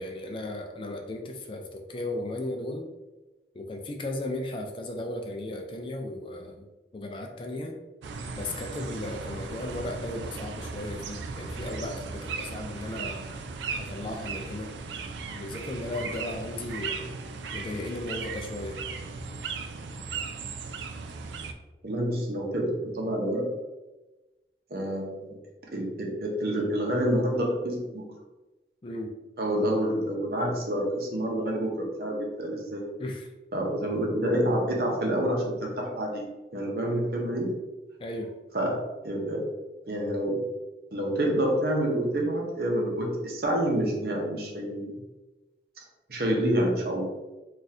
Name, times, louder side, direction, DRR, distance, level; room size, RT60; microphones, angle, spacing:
voice 1, 0.0-2.9 3.5-6.7 6.9-7.8 8.4-13.3 13.8-14.7 15.3-17.1 17.5-18.9 28.8-29.1 33.0-33.3 38.0-38.3, left 1 dB, 30° left, 3 dB, 0.3 m, -36 dB
sound 1, 8.0-21.5, right 4 dB, 85° right, 0.3 m, -37 dB
voice 2, 21.8-23.4 24.7-25.3 25.7-28.0 29.4-32.8 33.5-37.5 38.5-39.5 39.9-40.4 40.9-44.9 46.1-47.1, right 1 dB, 60° right, 0 dB, 0.7 m, -28 dB
2.6 x 2.4 x 4.0 m, 1.1 s
head